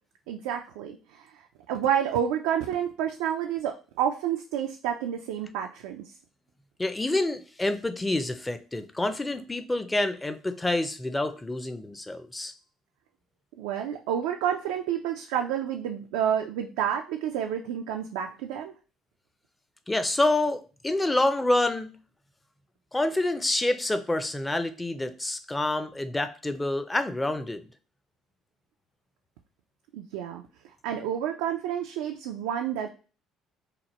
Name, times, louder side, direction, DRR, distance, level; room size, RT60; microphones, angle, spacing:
voice 1, 0.3-1.3 1.7-6.0 13.6-18.7 29.9-30.4 30.8-32.9, right 9 dB, 90° right, 3 dB, 0.3 m, -29 dB
voice 2, 6.8-12.5 19.9-22.0 22.9-27.6, left 2 dB, 15° left, 9 dB, 0.5 m, -27 dB
2.9 x 2.1 x 4.1 m, 0.35 s
supercardioid pair, 85°, 0 cm